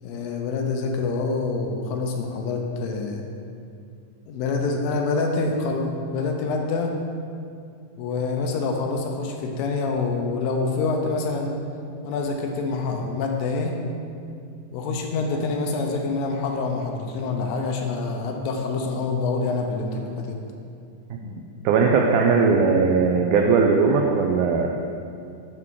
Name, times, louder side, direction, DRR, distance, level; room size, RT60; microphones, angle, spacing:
voice 1, 0.0-3.2 4.3-6.9 8.0-11.6 12.1-13.8 14.7-20.4, left 3 dB, 85° left, 2 dB, 2.4 m, -26 dB
voice 2, 21.6-24.7, right 5 dB, 85° right, 1 dB, 1.8 m, -19 dB
8.2 x 6.0 x 3.7 m, 2.4 s
omnidirectional pair, 4.1 m